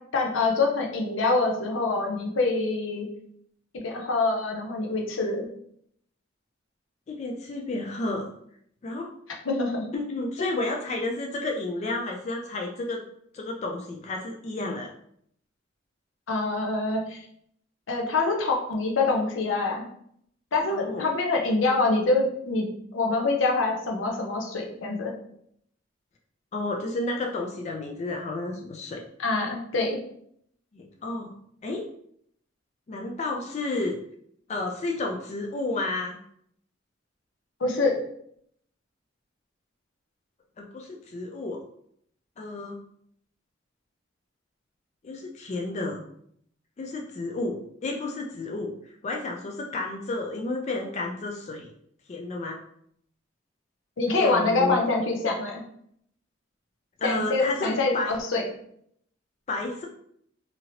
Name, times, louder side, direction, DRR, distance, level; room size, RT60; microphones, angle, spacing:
voice 1, 0.1-3.1 3.7-5.4 9.4-9.9 10.4-10.5 16.3-17.2 17.9-19.8 20.5-22.7 22.9-25.1 29.2-30.0 37.6-37.9 54.0-55.6 57.0-58.4, left 3 dB, 85° left, 1 dB, 0.7 m, -25 dB
voice 2, 7.1-8.3 8.8-9.1 9.9-13.0 13.3-14.9 20.7-21.0 26.5-29.0 30.7-31.3 31.6-31.9 32.9-34.0 34.5-36.2 40.6-41.6 42.4-42.8 45.0-46.0 46.8-48.7 49.0-51.7 52.1-52.6 54.1-54.8 57.0-58.2 59.5-59.8, left 2 dB, 35° left, 1 dB, 0.3 m, -31 dB
2.9 x 2.8 x 2.7 m, 0.69 s
head